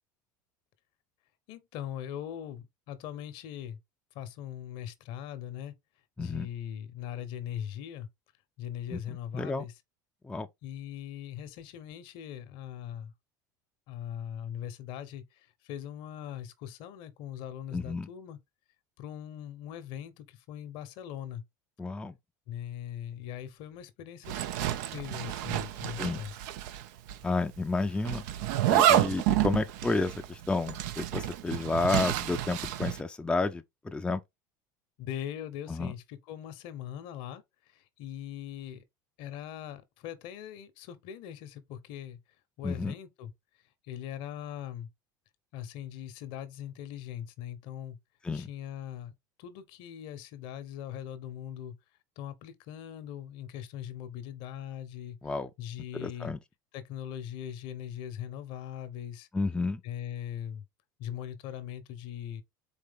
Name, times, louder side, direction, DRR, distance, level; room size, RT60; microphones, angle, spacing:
voice 1, 1.5-3.8 4.1-5.7 6.2-8.1 8.6-9.7 10.6-13.1 13.9-18.4 19.0-21.4 22.5-26.3 35.0-38.8 39.2-42.2 42.6-43.3 43.9-44.9 45.5-48.0 48.3-49.1 49.4-51.7 52.2-55.2 55.6-56.3 56.7-59.3 59.8-60.6 61.0-62.4, left 10 dB, 65° left, 0.9 m, -40 dB
voice 2, 6.2-6.5 8.9-9.0 9.3-9.6 10.2-10.5 17.7-18.1 21.8-22.1 26.0-26.2 27.2-28.2 28.7-34.2 35.7-35.9 42.6-42.9 48.2-48.5 55.2-55.5 55.9-56.4 59.3-59.8, left 3 dB, 10° left, 0.5 m, -31 dB
Zipper (clothing), 24.3-26.8 27.1-27.2 28.1-33.0, right 12 dB, 70° right, 0.5 m, -29 dB
4.3 x 3.3 x 3.6 m
hypercardioid pair, 90°, 10 cm